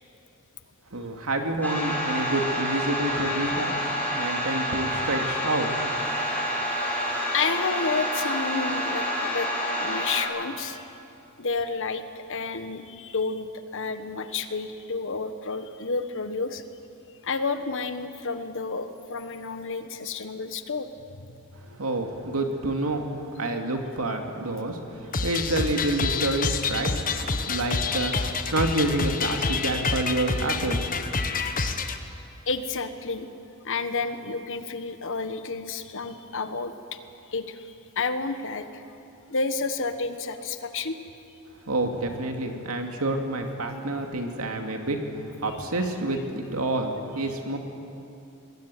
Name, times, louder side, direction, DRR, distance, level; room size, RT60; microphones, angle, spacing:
voice 1, 0.9-5.7 21.6-23.1 23.4-27.1 27.4-31.0 41.7-47.6, right 2 dB, 80° right, 4 dB, 2.6 m, -28 dB
sound 1, 1.6-10.2, equal, 10° left, 5.1 m, -28 dB
voice 2, 6.8-9.5 9.8-10.8 11.4-16.6 17.2-20.9 21.1-21.3 27.3-27.4 32.5-33.3 33.6-37.0 37.3-38.8 39.3-41.0 45.5-45.6, left 4 dB, 60° left, 9 dB, 1.4 m, -30 dB
sound 2, 25.1-32.0, left 4 dB, 40° left, 1.3 m, -28 dB
23.5 x 20.0 x 9.2 m, 2.8 s
head